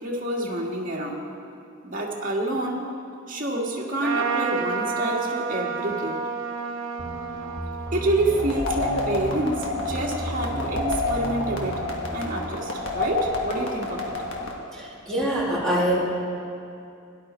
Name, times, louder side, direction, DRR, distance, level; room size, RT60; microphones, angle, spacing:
voice 1, 0.0-1.2 1.8-2.9 3.3-6.2 7.9-11.8 12.1-14.1, right 1 dB, 40° right, -2 dB, 1.8 m, -28 dB
Trumpet, 4.0-9.8, right 5 dB, 65° right, 1.2 m, -31 dB
sound 1, 7.0-12.0, right 1 dB, 20° right, 1.7 m, -33 dB
sound 2, 8.4-14.5, left 2 dB, 65° left, 1.7 m, -29 dB
voice 2, 14.7-16.0, right 1 dB, 5° left, -7 dB, 2.4 m, -24 dB
17.0 x 10.5 x 4.4 m, 2.6 s
head